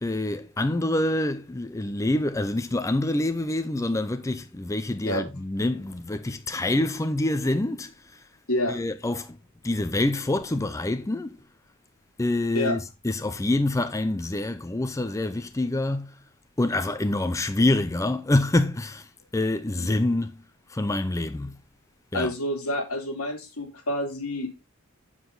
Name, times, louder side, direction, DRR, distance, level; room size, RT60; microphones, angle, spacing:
voice 1, 0.0-8.2 8.7-9.4 9.6-11.4 12.2-16.2 16.6-20.4 20.7-21.6 22.1-22.3, left 2 dB, 15° left, 0.5 m, -26 dB
voice 2, 22.1-24.7, left 1 dB, 80° left, 2.8 m, -28 dB
7.9 x 7.2 x 3.8 m
head